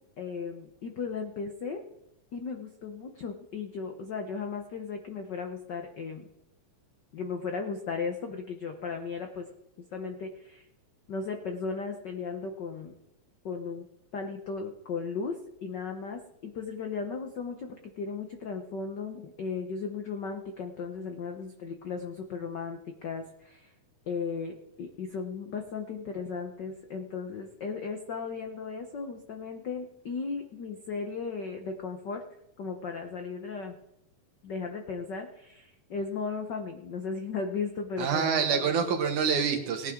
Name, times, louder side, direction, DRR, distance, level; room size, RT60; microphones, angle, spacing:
voice 1, 0.2-1.8 2.3-6.3 7.1-9.5 9.8-10.7 11.1-12.9 13.4-13.9 14.1-23.7 24.1-32.2 32.6-33.8 34.4-38.7, left 5 dB, 75° left, 5 dB, 1.0 m, -36 dB
voice 2, 38.0-39.9, right 6 dB, 85° right, 4 dB, 3.1 m, -26 dB
18.5 x 10.5 x 3.7 m, 0.85 s
omnidirectional pair, 3.4 m